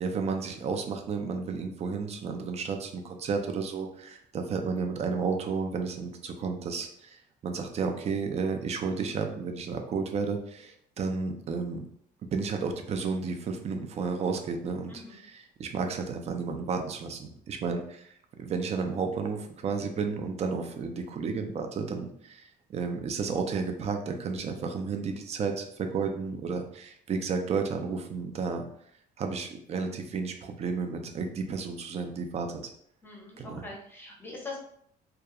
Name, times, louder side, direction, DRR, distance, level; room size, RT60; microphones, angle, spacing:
voice 1, 0.0-11.8 12.3-18.1 18.4-28.6 29.2-32.6 33.4-33.6, right 5 dB, 40° right, 5 dB, 0.4 m, -32 dB
voice 2, 14.9-15.2 33.0-34.6, left 3 dB, 10° left, -1 dB, 0.7 m, -42 dB
2.3 x 2.1 x 2.8 m, 0.68 s
cardioid pair, 110°, 17 cm